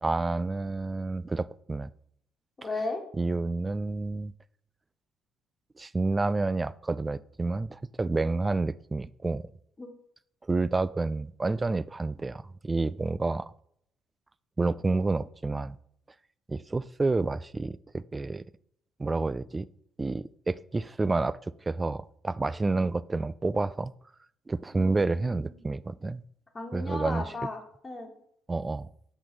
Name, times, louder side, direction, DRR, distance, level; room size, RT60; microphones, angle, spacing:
voice 1, 0.0-1.9 3.2-4.3 5.8-9.4 10.5-13.5 14.6-15.8 16.5-18.4 19.0-19.7 20.0-23.9 24.5-26.2 26.7-27.2 28.5-28.9, right 3 dB, 25° right, 0.3 m, -29 dB
voice 2, 2.6-3.0 9.8-9.9 24.7-25.6 26.5-28.1, left 2 dB, 25° left, 1.5 m, -36 dB
6.1 x 5.9 x 4.0 m
hypercardioid pair, 50°, 0 cm